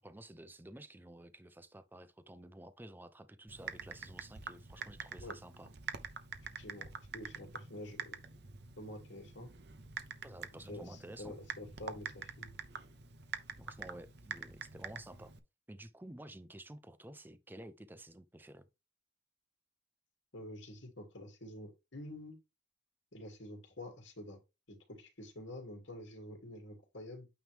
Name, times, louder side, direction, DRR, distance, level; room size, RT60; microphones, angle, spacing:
voice 1, 0.0-5.7 10.2-11.4 13.6-15.3 15.7-18.7, right 1 dB, 10° right, 0.6 m, -51 dB
Typing, 3.5-15.4, right 6 dB, 60° right, 0.8 m, -46 dB
voice 2, 6.6-6.9 7.1-8.2 8.8-9.5 10.7-12.6 20.3-22.4 23.1-24.4 24.7-27.3, left 1 dB, 85° left, 2.7 m, -48 dB
9.0 x 3.1 x 3.4 m
head